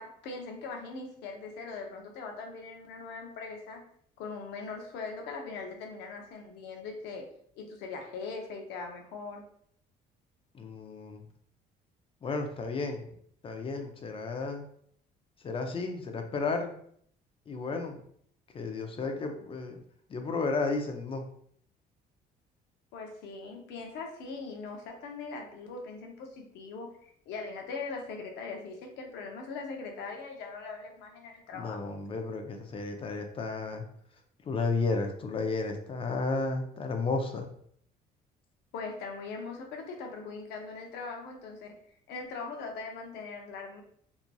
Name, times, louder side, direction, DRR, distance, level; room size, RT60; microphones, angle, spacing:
voice 1, 0.0-3.8 4.2-7.3 7.6-9.4 22.9-31.9 38.7-41.8 42.1-43.8, left 4 dB, 85° left, 2 dB, 0.6 m, -41 dB
voice 2, 10.5-11.2 12.2-13.0 13.4-14.6 15.4-16.8 17.5-18.0 18.5-19.7 20.1-21.2 31.5-33.8 34.5-37.5, left 3 dB, 35° left, 5 dB, 0.5 m, -33 dB
2.9 x 2.6 x 2.2 m, 0.65 s
cardioid pair, 110°, 17 cm